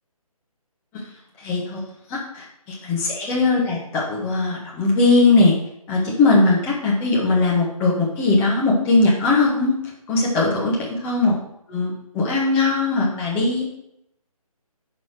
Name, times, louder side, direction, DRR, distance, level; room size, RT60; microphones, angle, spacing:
voice 1, 1.4-1.8 2.1-5.5 5.9-9.7 10.1-11.3 11.7-13.7, left 3 dB, 10° left, -4 dB, 1.1 m, -19 dB
11.0 x 4.3 x 4.5 m, 0.79 s
figure-of-eight pair, 150°, 19 cm